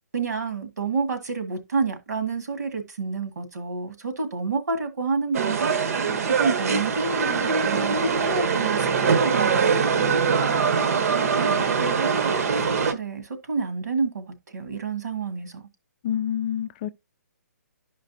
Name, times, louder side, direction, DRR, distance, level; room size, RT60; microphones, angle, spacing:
voice 1, 0.1-5.9 6.3-10.4 11.1-12.6 12.9-15.6, right 4 dB, 70° right, 2.0 m, -29 dB
sound 1, 5.3-12.9, right 5 dB, 55° right, 1.2 m, -23 dB
voice 2, 16.0-16.9, left 10 dB, 35° left, 0.4 m, -27 dB
11.5 x 5.2 x 2.7 m
hypercardioid pair, 140°, 10 cm